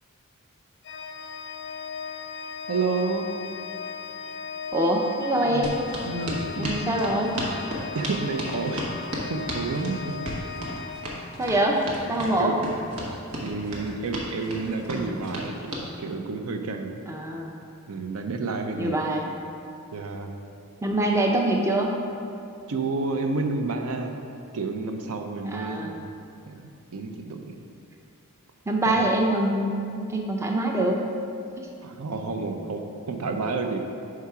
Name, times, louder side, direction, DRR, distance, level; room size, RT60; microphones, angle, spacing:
Organ, 0.8-11.7, left 5 dB, 50° left, 0.4 m, -37 dB
voice 1, 2.7-3.3 5.4-5.7 6.0-6.8 7.9-9.0 9.3-10.2 12.4-12.6 13.4-15.5 16.0-17.0 17.9-19.1 19.9-20.3 22.7-24.2 24.5-26.0 26.5-26.6 26.9-27.5 29.0-29.1 31.8-33.8, right 3 dB, 70° right, 4 dB, 0.5 m, -30 dB
voice 2, 4.7-5.7 6.6-7.3 11.4-11.8 12.1-12.5 17.1-17.5 18.8-19.3 20.8-21.9 25.4-26.0 28.7-31.0 31.6-31.7, right 1 dB, 15° right, 0 dB, 0.4 m, -24 dB
sound 1, 5.6-15.9, right 1 dB, 85° right, 1.2 m, -34 dB
5.6 x 4.7 x 4.7 m, 2.5 s
head